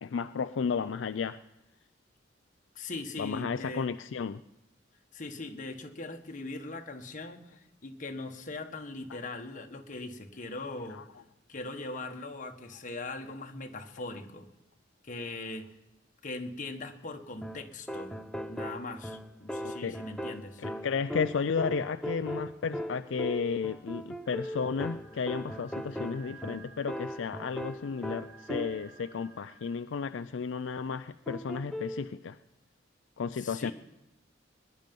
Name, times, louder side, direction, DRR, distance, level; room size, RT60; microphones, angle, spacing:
voice 1, 0.0-1.4 3.2-4.4 10.9-11.0 19.6-20.0 20.6-32.4 33.2-33.7, left 5 dB, 75° left, 10 dB, 0.4 m, -33 dB
voice 2, 2.7-3.9 5.1-11.2 11.5-14.5 15.0-15.7 16.2-20.6 33.3-33.7, left 2 dB, 45° left, 5 dB, 1.4 m, -40 dB
sound 1, 17.4-29.0 31.3-32.1, equal, 5° left, 0.7 m, -38 dB
sound 2, 24.2-29.7, right 4 dB, 20° right, 4.7 m, -55 dB
22.0 x 10.5 x 5.3 m, 0.95 s
head